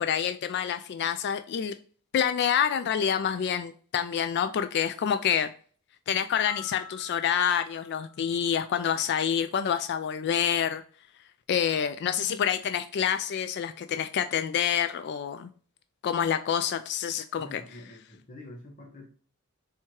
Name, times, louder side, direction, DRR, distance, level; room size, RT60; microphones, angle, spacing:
voice 1, 0.0-1.7 2.1-5.5 6.1-10.8 11.5-15.5 16.0-17.6, left 8 dB, 50° left, 10 dB, 0.3 m, -27 dB
sound 1, 6.5-8.8, left 3 dB, 45° right, 0.9 m, -47 dB
voice 2, 17.4-19.1, left 1 dB, 35° left, -1 dB, 1.1 m, -46 dB
4.5 x 3.5 x 2.9 m, 0.44 s
head